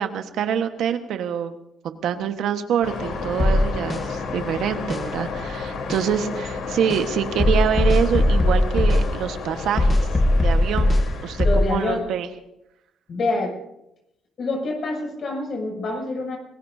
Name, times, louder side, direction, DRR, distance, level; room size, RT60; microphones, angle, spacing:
voice 1, 0.0-1.5 1.8-9.9 10.4-12.3, right 8 dB, 80° right, 7 dB, 1.4 m, -25 dB
sound 1, 2.8-12.0, left 4 dB, 75° left, 3.7 m, -32 dB
sound 2, 3.4-4.0 4.9-5.0 5.9-6.0 6.9-7.0 7.4-9.1 9.8-11.1 11.4-11.7, left 1 dB, 30° left, 1.5 m, -19 dB
voice 2, 11.4-12.1 13.1-13.6 14.4-16.4, left 2 dB, 55° left, 1 dB, 7.2 m, -26 dB
26.0 x 20.0 x 2.8 m, 0.84 s
cardioid pair, 90°, 0 cm